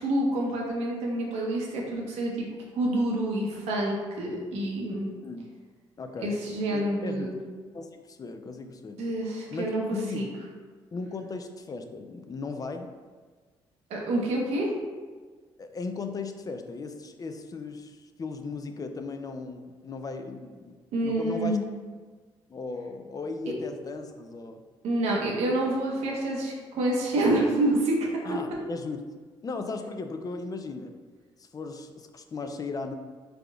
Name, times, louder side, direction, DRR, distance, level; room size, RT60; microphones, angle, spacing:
voice 1, 0.0-2.5 2.8-5.1 6.2-7.3 9.0-9.8 10.1-10.3 13.9-14.7 20.9-21.6 24.8-28.0, right 1 dB, 85° right, -2 dB, 0.8 m, -27 dB
voice 2, 6.0-6.4 6.7-7.3 7.7-9.0 9.5-9.7 9.9-10.4 10.9-12.9 15.6-21.6 22.5-24.6 28.2-29.0 29.4-30.9 31.4-32.9, left 4 dB, 35° left, 6 dB, 0.4 m, -37 dB
3.8 x 3.4 x 2.3 m, 1.5 s
cardioid pair, 70°, 11 cm